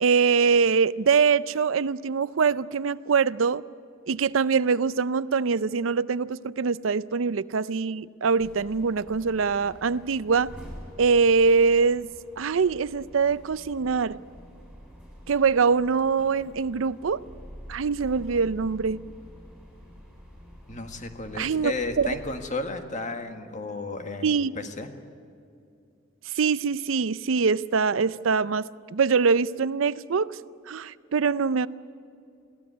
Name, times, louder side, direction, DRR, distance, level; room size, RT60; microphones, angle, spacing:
voice 1, 0.0-3.6 4.1-10.5 11.0-12.1 12.4-14.2 15.3-17.2 17.7-19.0 21.3-22.1 24.2-24.5 26.3-30.4 30.7-31.7, right 5 dB, 85° right, 17 dB, 0.5 m, -23 dB
sound 1, 8.4-22.4, equal, ahead, 7.2 m, -47 dB
voice 2, 20.7-24.9, left 3 dB, 40° left, 6 dB, 1.7 m, -33 dB
22.5 x 16.0 x 9.7 m, 2.5 s
head